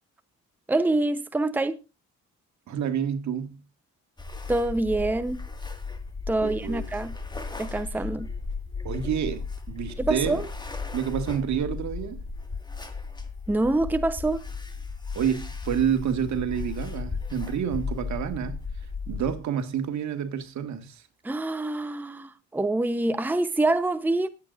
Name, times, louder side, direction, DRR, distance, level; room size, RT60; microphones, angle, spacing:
voice 1, 0.7-1.8 4.5-5.4 6.3-7.2 7.6-8.3 10.0-10.5 13.5-14.5 21.2-24.3, right 2 dB, 5° right, 0.8 m, -26 dB
voice 2, 2.7-3.6 6.4-6.8 8.8-10.4 10.9-12.2 15.1-18.6 19.1-21.0, right 8 dB, 70° right, 1.8 m, -28 dB
sound 1, 4.2-19.4, left 4 dB, 15° left, 1.8 m, -35 dB
23.5 x 8.3 x 2.5 m
cardioid pair, 90°, 30 cm